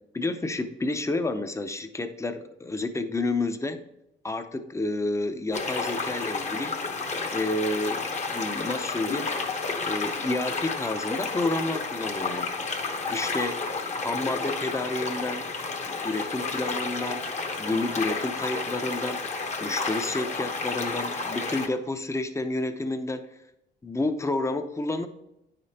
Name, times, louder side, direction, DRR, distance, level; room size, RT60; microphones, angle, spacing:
voice 1, 0.1-3.8 4.2-6.8 7.3-9.3 9.8-12.5 13.1-13.6 14.0-15.4 16.0-19.2 19.6-23.3 23.8-25.1, left 2 dB, 15° left, 8 dB, 0.6 m, -30 dB
sound 1, 5.5-21.7, left 4 dB, 35° left, 0.9 m, -31 dB
9.2 x 5.1 x 2.9 m, 0.84 s
cardioid pair, 90°, 20 cm